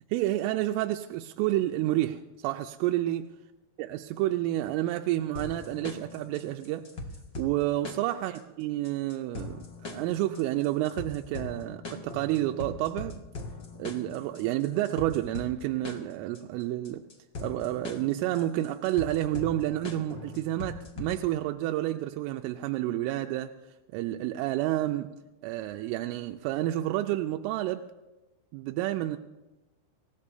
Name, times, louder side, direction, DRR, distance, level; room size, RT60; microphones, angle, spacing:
voice 1, 0.1-3.3 3.8-6.9 7.4-13.2 13.8-17.0 17.4-23.5 23.9-25.1 25.4-27.8 28.5-29.2, right 14 dB, 90° right, 5 dB, 3.2 m, -30 dB
sound 1, 5.3-21.3, left 3 dB, 70° left, 1.1 m, -41 dB
27.0 x 17.0 x 2.7 m, 1.0 s
omnidirectional pair, 5.7 m